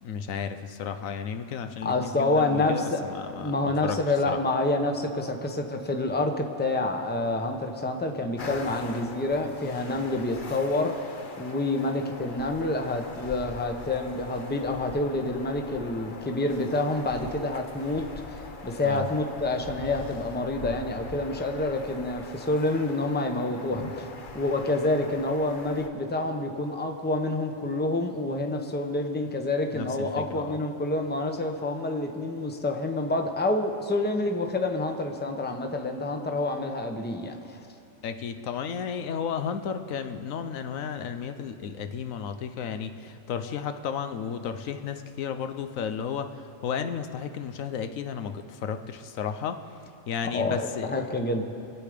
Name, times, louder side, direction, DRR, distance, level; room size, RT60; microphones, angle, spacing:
voice 1, 0.0-4.0 4.2-4.4 18.8-19.0 29.7-30.6 38.0-49.6 50.1-51.1, left 7 dB, 85° left, 8 dB, 1.1 m, -33 dB
voice 2, 1.8-11.1 11.4-18.0 18.6-37.6 50.3-51.4, left 2 dB, 10° left, 4 dB, 0.8 m, -28 dB
sound 1, 8.4-25.9, left 3 dB, 45° left, 0.9 m, -42 dB
25.5 x 8.5 x 5.1 m, 2.5 s
omnidirectional pair, 1.4 m